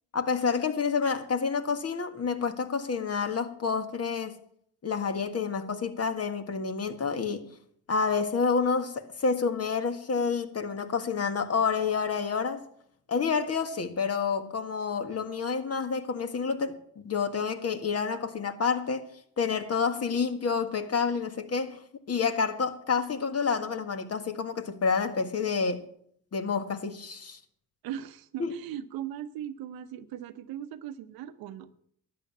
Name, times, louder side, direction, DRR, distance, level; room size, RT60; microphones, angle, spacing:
voice 1, 0.1-4.4 4.8-7.5 7.9-12.7 13.1-16.8 17.0-19.1 19.4-21.8 22.1-25.8 26.3-27.4 28.4-28.5, left 5 dB, 45° left, 1.7 m, -29 dB
voice 2, 27.8-31.7, right 10 dB, 80° right, 0.9 m, -38 dB
12.5 x 9.1 x 7.3 m
supercardioid pair, 70°, 36 cm